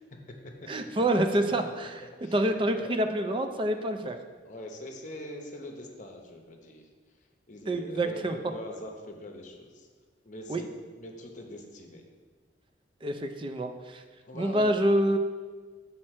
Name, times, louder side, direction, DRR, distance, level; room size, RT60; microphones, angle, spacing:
voice 1, 0.7-2.1 2.3-4.2 7.7-8.4 10.5-10.6 13.0-14.0 14.3-15.2, right 1 dB, 25° right, 7 dB, 0.4 m, -27 dB
voice 2, 2.0-2.3 2.7-3.0 4.4-6.9 7.5-9.9 10.2-10.7 10.9-12.0 14.2-14.7, left 1 dB, 40° left, 2 dB, 0.8 m, -42 dB
6.4 x 4.3 x 4.3 m, 1.5 s
head